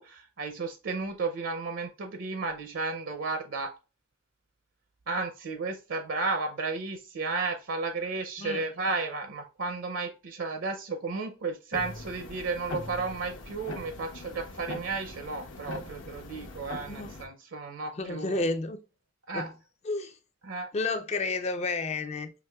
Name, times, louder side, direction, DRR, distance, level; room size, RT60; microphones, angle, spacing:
voice 1, 0.0-3.7 5.1-18.4 19.3-19.5 20.4-20.7, right 3 dB, 70° right, 0.5 m, -33 dB
sound 1, 11.7-17.3, left 2 dB, 70° left, 0.8 m, -42 dB
voice 2, 18.0-18.8 19.3-19.5 19.8-20.1 20.7-22.3, left 3 dB, 30° left, 0.4 m, -31 dB
5.9 x 2.9 x 2.3 m
head